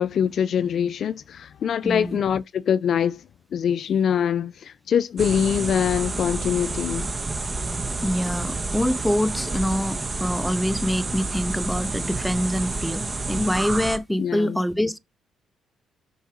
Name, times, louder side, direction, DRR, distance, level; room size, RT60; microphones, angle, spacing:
voice 1, 0.0-3.2 3.5-7.1 14.2-14.6, left 8 dB, 60° left, 0.4 m, -24 dB
voice 2, 1.8-2.2 8.0-15.0, equal, ahead, 0.7 m, -25 dB
sound 1, 5.2-14.0, right 3 dB, 25° right, 1.1 m, -29 dB
6.3 x 4.7 x 4.6 m
cardioid pair, 90°, 0 cm